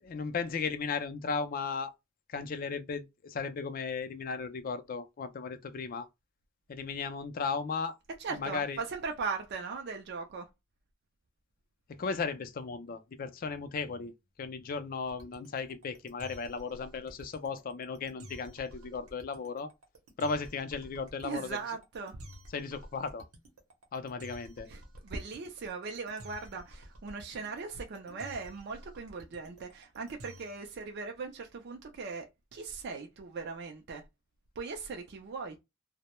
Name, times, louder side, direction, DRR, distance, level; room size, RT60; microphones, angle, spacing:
voice 1, 0.0-1.9 2.3-6.1 6.7-8.0 8.3-8.8 11.9-14.1 14.4-19.7 20.2-21.6 22.5-23.2 23.9-24.7, left 5 dB, 45° left, 0.4 m, -36 dB
voice 2, 8.2-10.5 21.2-22.2 24.7-34.0 34.6-35.6, right 4 dB, 50° right, 0.4 m, -39 dB
sound 1, 15.1-30.7, equal, 85° right, 0.7 m, -51 dB
2.1 x 2.0 x 2.9 m
head